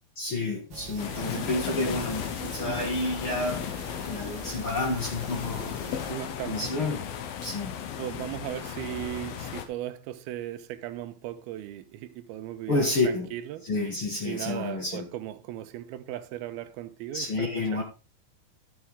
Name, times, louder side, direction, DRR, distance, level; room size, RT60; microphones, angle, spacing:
voice 1, 0.2-3.7 4.1-5.7 6.5-7.1 7.4-7.7 12.7-13.3 13.6-15.1 17.1-17.8, left 2 dB, 45° left, 1.9 m, -29 dB
sound 1, 0.7-6.1, right 3 dB, 60° right, 1.2 m, -43 dB
sound 2, 1.0-9.7, left 9 dB, 75° left, 2.7 m, -36 dB
voice 2, 1.2-2.0 6.1-6.7 8.0-13.7 14.2-17.8, right 13 dB, 85° right, 2.6 m, -37 dB
11.5 x 7.1 x 3.5 m
omnidirectional pair, 4.4 m